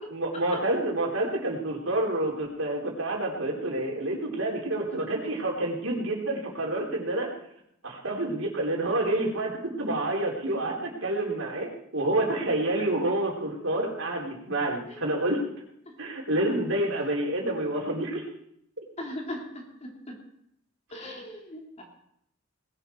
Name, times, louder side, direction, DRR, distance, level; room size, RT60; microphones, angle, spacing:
voice 1, 0.1-7.3 7.8-15.4 16.0-18.3, right 1 dB, 75° right, -1 dB, 3.9 m, -28 dB
voice 2, 19.0-19.4 19.8-19.9 20.9-21.8, left 1 dB, 35° left, 0 dB, 3.2 m, -38 dB
20.0 x 12.0 x 4.6 m, 0.72 s
head